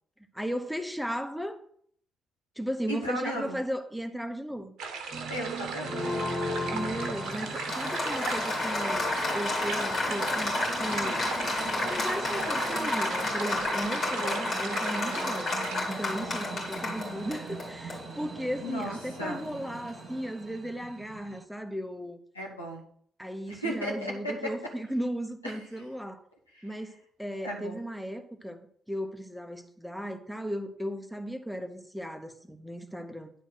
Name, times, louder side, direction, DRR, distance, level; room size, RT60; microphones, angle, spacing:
voice 1, 0.3-1.6 2.6-4.7 6.7-11.3 11.9-22.2 23.2-26.2 26.6-33.3, equal, ahead, 1.1 m, -36 dB
voice 2, 2.9-3.6 5.3-6.2 18.6-18.9 19.2-19.4 22.3-22.8 23.5-24.5 25.4-25.6 26.6-26.7 27.4-27.8, equal, 85° left, 1.5 m, -35 dB
sound 1, 4.8-15.8, right 4 dB, 60° right, 1.2 m, -37 dB
sound 2, 5.1-21.4, right 6 dB, 40° right, 0.7 m, -42 dB
Applause, 5.8-20.2, left 2 dB, 50° left, 2.6 m, -32 dB
10.0 x 4.2 x 6.2 m
figure-of-eight pair, 40°, 0 cm